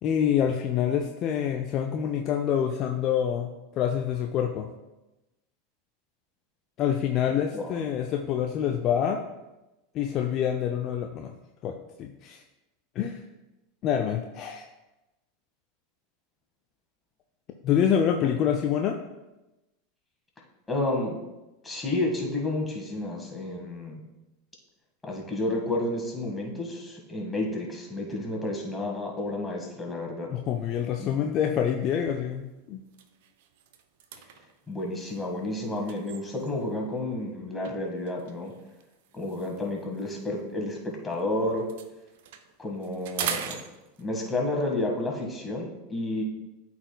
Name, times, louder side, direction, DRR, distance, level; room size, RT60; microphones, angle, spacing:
voice 1, 0.0-4.7 6.8-9.2 9.9-11.3 11.6-12.4 13.0-13.2 13.8-14.7 17.6-19.0 30.3-32.8, left 9 dB, 40° left, 4 dB, 0.5 m, -26 dB
voice 2, 20.7-21.2 21.6-24.0 25.0-30.3 31.0-31.1 34.7-38.5 39.1-41.7 42.6-43.6 44.0-46.2, left 2 dB, 10° left, -1 dB, 1.8 m, -31 dB
sound 1, 31.7-31.9 32.4-32.5 32.8-36.8 37.6-41.2 41.5-44.3, right 8 dB, 60° right, 0.5 m, -41 dB
12.0 x 4.3 x 2.3 m, 1.0 s
figure-of-eight pair, 85°, 0 cm